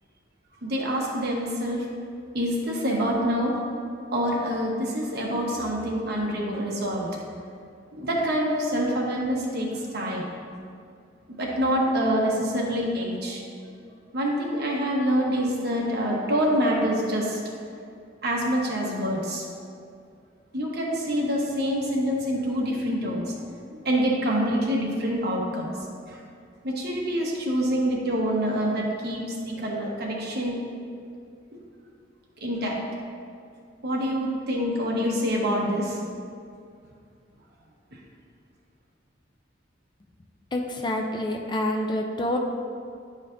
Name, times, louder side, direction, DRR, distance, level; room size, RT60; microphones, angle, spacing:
voice 1, 0.6-1.8 2.3-3.5 4.1-7.1 7.9-10.3 11.4-13.4 14.1-17.4 18.2-19.5 20.5-23.3 23.7-25.7 26.1-26.2 26.6-30.6 32.4-32.8 33.8-36.0, equal, 60° right, -2 dB, 1.2 m, -26 dB
voice 2, 40.5-42.4, left 1 dB, 25° left, 2 dB, 0.4 m, -27 dB
9.7 x 4.9 x 2.6 m, 2.4 s
head